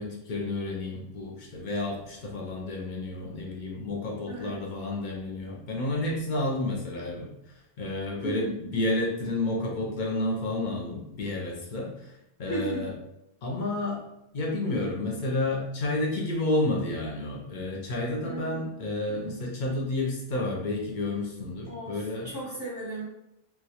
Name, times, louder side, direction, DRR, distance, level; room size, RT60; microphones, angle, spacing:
voice 1, 0.0-7.3 7.8-12.1 12.4-12.9 13.4-14.0 14.3-22.3, left 2 dB, 55° left, -2 dB, 0.6 m, -30 dB
voice 2, 4.3-4.6 8.2-8.5 12.4-12.8 18.2-18.6 21.7-22.0 22.2-23.0, right 2 dB, 20° left, -9 dB, 0.7 m, -35 dB
2.2 x 2.0 x 2.8 m, 0.84 s
omnidirectional pair, 1.1 m